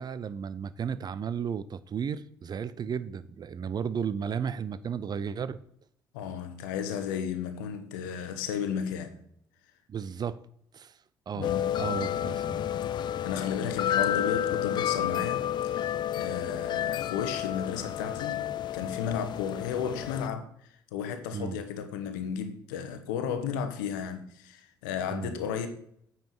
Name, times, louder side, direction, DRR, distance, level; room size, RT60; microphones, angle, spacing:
voice 1, 0.0-5.6 9.9-10.4 10.7-11.0 11.3-12.7 21.3-21.6 25.1-25.4, right 7 dB, 40° right, 0.6 m, -34 dB
voice 2, 6.1-9.2 11.3-11.8 12.9-25.7, left 7 dB, 75° left, 1.0 m, -34 dB
sound 1, 11.4-20.3, left 10 dB, 45° left, 0.3 m, -30 dB
9.1 x 5.6 x 4.7 m
hypercardioid pair, 50°, 11 cm